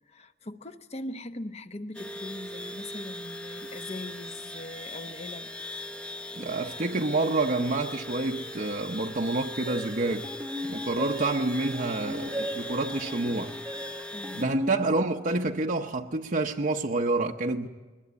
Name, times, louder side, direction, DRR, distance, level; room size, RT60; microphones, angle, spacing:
voice 1, 0.1-5.5 14.1-14.5, left 1 dB, 35° left, 0.9 m, -40 dB
sound 1, 1.9-14.4, left 1 dB, 5° left, 0.7 m, -39 dB
voice 2, 6.3-10.3 10.7-13.5 14.3-17.7, right 2 dB, 45° right, 0.8 m, -28 dB
sound 2, 9.7-15.5, equal, 15° right, 1.0 m, -38 dB
21.5 x 20.5 x 8.5 m
head